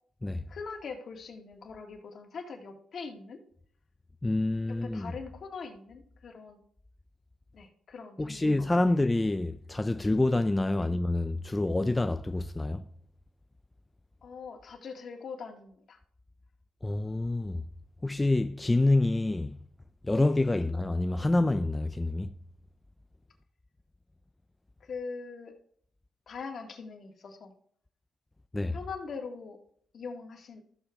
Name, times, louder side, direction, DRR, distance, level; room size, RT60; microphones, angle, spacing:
voice 1, 0.5-3.4 4.7-6.6 7.5-8.7 10.8-10.9 14.2-16.0 20.5-20.6 24.8-25.5 26.3-27.5 28.7-29.6 29.9-30.6, left 5 dB, 50° left, 1.8 m, -42 dB
voice 2, 4.2-5.1 8.2-12.8 16.8-17.6 18.0-19.6 20.0-22.3 28.5-28.8, left 2 dB, 15° left, 0.3 m, -27 dB
14.0 x 6.7 x 3.5 m
cardioid pair, 110°, 0 cm